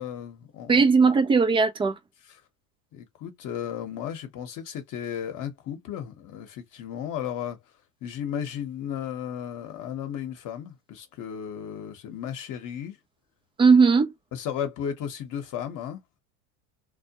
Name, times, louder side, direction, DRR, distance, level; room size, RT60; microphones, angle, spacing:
voice 1, 0.0-0.7 2.9-7.6 8.0-13.0 14.3-16.2, left 9 dB, 45° left, 0.9 m, -34 dB
voice 2, 0.7-2.0 13.6-14.1, right 4 dB, 15° right, 0.3 m, -18 dB
2.2 x 2.1 x 2.8 m
supercardioid pair, 100°, 44 cm